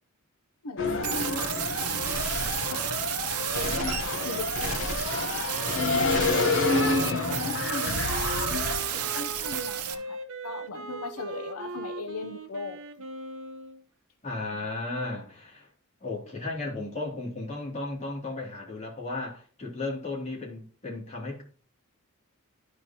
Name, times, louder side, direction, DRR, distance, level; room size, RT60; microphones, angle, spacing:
voice 1, 0.6-1.7 2.7-3.0 3.5-6.1 6.8-12.8 14.5-14.7, left 3 dB, 85° left, 6 dB, 0.7 m, -38 dB
sound 1, 0.8-8.8, left 3 dB, 60° left, 1.0 m, -28 dB
sound 2, 1.0-9.9, right 10 dB, 90° right, 0.7 m, -32 dB
Wind instrument woodwind instrument, 6.7-13.8, right 3 dB, 65° right, 0.9 m, -40 dB
voice 2, 14.2-15.7 16.0-21.4, left 2 dB, 30° left, -3 dB, 2.6 m, -35 dB
12.0 x 4.9 x 2.9 m, 0.41 s
head